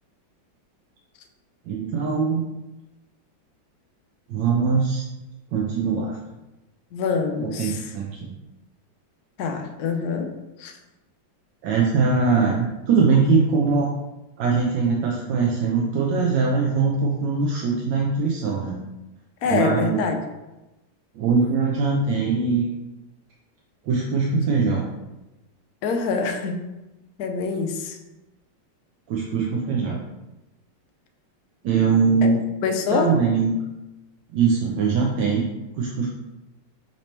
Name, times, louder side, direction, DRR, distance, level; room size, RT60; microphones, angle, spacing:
voice 1, 1.7-2.5 4.3-5.0 5.5-6.2 7.4-8.3 11.6-13.9 14.4-18.8 19.4-20.0 21.2-22.7 23.9-24.8 29.1-30.0 31.6-32.4 32.9-33.5 34.3-35.4 35.8-36.1, right 5 dB, 75° right, -2 dB, 1.2 m, -21 dB
voice 2, 6.9-7.8 9.4-10.3 10.6-10.8 19.4-20.2 25.8-26.6 27.2-28.0 32.2-32.3 32.6-33.2, left 5 dB, 80° left, 5 dB, 0.8 m, -25 dB
5.9 x 2.8 x 3.2 m, 1.0 s
omnidirectional pair, 2.3 m